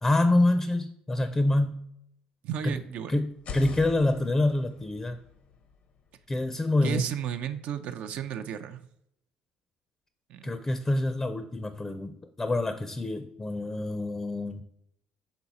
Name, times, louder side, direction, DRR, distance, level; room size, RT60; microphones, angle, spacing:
voice 1, 0.0-1.8 2.6-2.8 3.1-5.2 6.3-7.1 10.4-14.6, left 2 dB, 20° left, 9 dB, 0.5 m, -26 dB
voice 2, 2.4-3.1 6.8-8.9 10.3-10.5, right 9 dB, 70° right, 8 dB, 0.5 m, -33 dB
sound 1, 3.3-7.1, left 6 dB, 60° left, 0.7 m, -44 dB
6.1 x 3.9 x 4.1 m, 0.75 s
cardioid pair, 95°, 3 cm